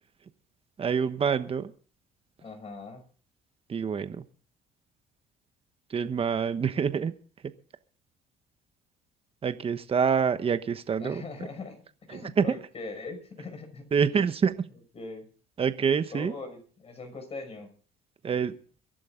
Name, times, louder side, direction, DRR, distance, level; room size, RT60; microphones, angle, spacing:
voice 1, 0.8-1.7 3.7-4.2 5.9-7.1 9.4-11.2 12.1-12.5 13.9-14.5 15.6-16.3 18.2-18.5, right 6 dB, 35° right, 11 dB, 1.2 m, -26 dB
voice 2, 2.4-3.0 11.0-13.9 14.1-14.3 14.9-15.3 16.1-17.7, left 3 dB, 35° left, 6 dB, 6.0 m, -41 dB
23.0 x 11.5 x 3.8 m, 0.41 s
cardioid pair, 110°, 17 cm